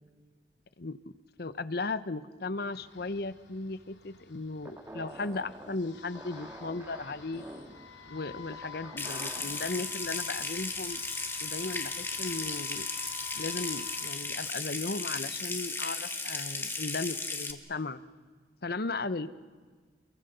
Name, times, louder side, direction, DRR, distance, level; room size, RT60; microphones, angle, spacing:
voice 1, 0.8-1.1 1.4-7.4 8.0-11.0 11.4-12.9 13.3-18.0 18.6-19.3, left 3 dB, 60° left, 15 dB, 0.9 m, -36 dB
sound 1, 2.7-14.2, left 8 dB, 85° left, 3.5 m, -49 dB
sound 2, 4.7-9.8, right 1 dB, 15° right, 1.9 m, -47 dB
Water tap faucet / Sink (filling or washing) / Trickle dribble, 9.0-17.5, left 3 dB, 15° left, 1.7 m, -35 dB
28.0 x 23.0 x 6.8 m, 1.5 s
head